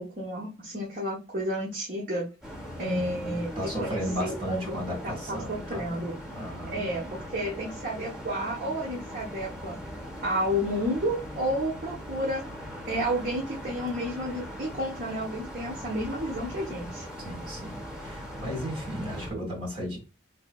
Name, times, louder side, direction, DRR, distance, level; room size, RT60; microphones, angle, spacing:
voice 1, 0.0-2.3 2.8-3.5 3.8-4.8 5.0-6.1 6.7-9.8 10.2-12.4 12.9-17.0, equal, 45° right, -5 dB, 0.9 m, -31 dB
sound 1, 2.4-19.3, equal, 5° right, 0.9 m, -40 dB
voice 2, 2.8-6.1 6.3-6.8 17.2-20.0, equal, 30° right, -1 dB, 1.7 m, -35 dB
3.9 x 3.1 x 2.3 m, 0.31 s
head